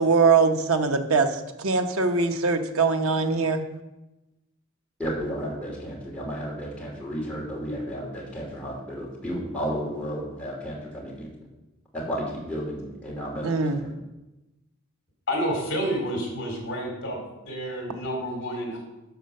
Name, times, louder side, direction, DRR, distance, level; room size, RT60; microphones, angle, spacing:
voice 1, 0.0-3.6 13.4-13.8, right 4 dB, 90° right, 6 dB, 0.9 m, -22 dB
voice 2, 5.0-11.3 11.9-13.9, equal, 5° left, -5 dB, 2.8 m, -33 dB
voice 3, 15.3-17.2 17.5-18.8, equal, 55° left, -1 dB, 3.7 m, -29 dB
11.5 x 4.6 x 6.7 m, 0.99 s
head